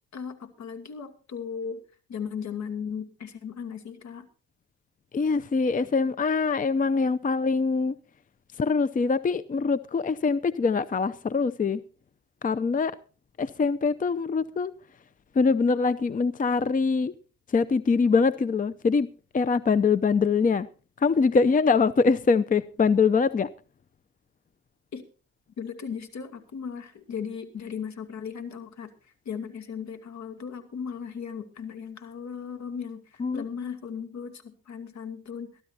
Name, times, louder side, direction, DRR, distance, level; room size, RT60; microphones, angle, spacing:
voice 1, 0.1-1.8 2.1-4.3 24.9-25.1 25.6-28.9 29.2-35.6, left 6 dB, 65° left, 7 dB, 2.6 m, -37 dB
voice 2, 5.1-8.0 8.6-11.8 12.4-12.9 13.4-14.7 15.3-17.1 17.5-19.1 19.3-20.7 21.0-23.5 33.2-33.4, left 4 dB, 25° left, 16 dB, 0.6 m, -23 dB
22.5 x 13.0 x 2.8 m, 0.36 s
cardioid pair, 90°, 30 cm